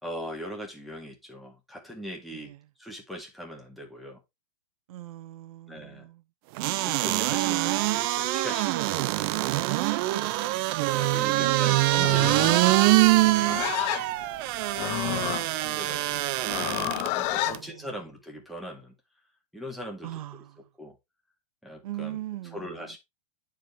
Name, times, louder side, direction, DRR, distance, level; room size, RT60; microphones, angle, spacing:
voice 1, 0.0-2.5 2.8-4.2 5.7-6.1 6.8-8.8 9.1-9.4 10.9-13.8 15.0-19.0 19.5-20.1 20.8-21.0 21.6-22.2 22.5-23.0, equal, ahead, 2.2 m, -41 dB
voice 2, 4.9-6.2 10.1-10.9 11.3-11.9 15.0-16.4 17.5-17.9 20.0-20.7 21.8-22.9, right 14 dB, 60° right, 0.8 m, -41 dB
sound 1, 6.6-17.1 17.5-17.6, right 18 dB, 35° right, 0.4 m, -24 dB
Livestock farm animals working animals, 11.9-17.6, left 15 dB, 35° left, 0.6 m, -31 dB
10.0 x 4.9 x 3.3 m
hypercardioid pair, 140°, 20 cm